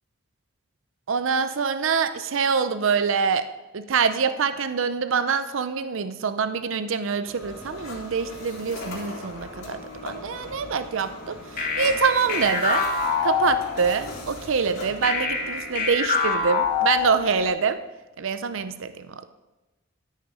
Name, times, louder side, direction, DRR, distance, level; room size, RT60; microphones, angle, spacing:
voice 1, 1.1-3.5 3.7-11.4 11.8-12.9 13.2-17.8 18.2-19.1, right 5 dB, 70° right, 11 dB, 0.6 m, -25 dB
sound 1, 7.3-17.5, left 1 dB, 85° left, 3.8 m, -40 dB
sound 2, 11.6-14.1 15.0-17.5, left 5 dB, 45° left, 2.1 m, -26 dB
13.0 x 6.6 x 4.8 m, 1.1 s
head